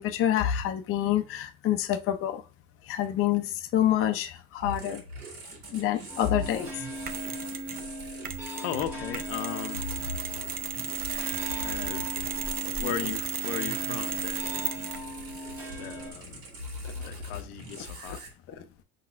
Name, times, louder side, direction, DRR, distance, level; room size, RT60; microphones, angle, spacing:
voice 1, 0.0-2.4 2.9-5.0 5.7-6.8, left 11 dB, 30° left, 0.5 m, -27 dB
sound 1, 4.6-18.3, equal, 85° right, 2.3 m, -42 dB
sound 2, 6.1-16.1, equal, 5° right, 1.7 m, -39 dB
Mechanisms, 7.1-7.9 8.2-15.1, right 8 dB, 25° right, 0.4 m, -34 dB
voice 2, 8.5-9.8 11.6-12.4 12.8-15.0 15.8-16.4 17.0-18.2, left 10 dB, 80° left, 0.8 m, -37 dB
5.4 x 3.9 x 2.4 m
supercardioid pair, 115°, 43 cm